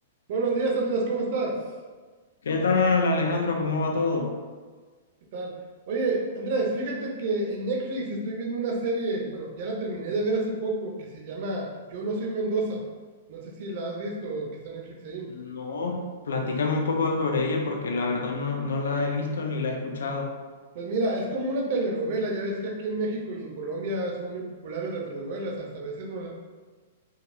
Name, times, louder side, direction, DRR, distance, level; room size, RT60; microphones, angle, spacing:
voice 1, 0.3-1.7 5.2-5.6 5.9-12.8 13.3-15.3 20.7-26.3, right 2 dB, 55° right, -1 dB, 0.7 m, -29 dB
voice 2, 2.4-4.3 15.3-20.3, left 3 dB, 70° left, 2 dB, 0.5 m, -26 dB
3.9 x 2.3 x 2.6 m, 1.4 s
figure-of-eight pair, 110°, 0 cm